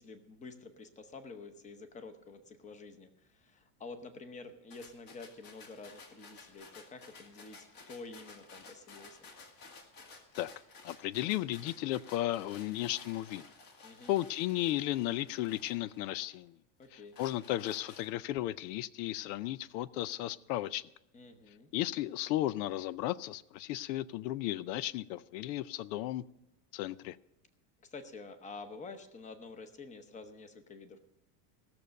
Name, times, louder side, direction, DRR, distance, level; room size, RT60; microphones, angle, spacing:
voice 1, 0.0-9.3 13.8-14.1 16.8-17.2 21.1-21.7 27.8-31.0, left 3 dB, 15° left, 0.8 m, -49 dB
sound 1, 4.7-16.4 16.8-18.4, left 4 dB, 45° left, 2.2 m, -54 dB
voice 2, 10.8-13.4 14.1-16.6 16.9-20.8 21.7-26.2 26.7-27.2, left 15 dB, 85° left, 0.6 m, -34 dB
16.5 x 6.9 x 6.5 m
cardioid pair, 155°, 48 cm